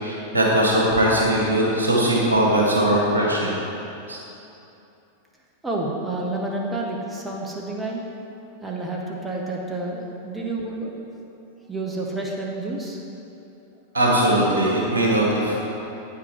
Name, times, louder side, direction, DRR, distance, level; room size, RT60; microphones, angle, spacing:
voice 1, 0.0-3.6 4.1-4.2 13.9-15.6, right 1 dB, 75° right, -4 dB, 1.8 m, -20 dB
voice 2, 5.6-8.0 8.6-10.9 11.6-13.0 13.3-13.4, right 2 dB, 10° right, -2 dB, 0.9 m, -29 dB
9.1 x 6.0 x 4.4 m, 2.8 s
figure-of-eight pair, 90°, 0 cm